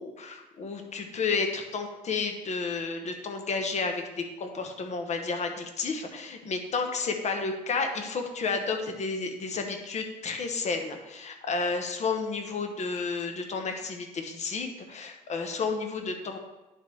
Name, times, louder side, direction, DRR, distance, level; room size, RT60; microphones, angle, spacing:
voice 1, 0.0-16.4, left 4 dB, 45° left, 4 dB, 1.2 m, -31 dB
10.0 x 3.6 x 4.7 m, 1.1 s
cardioid pair, 110°, 17 cm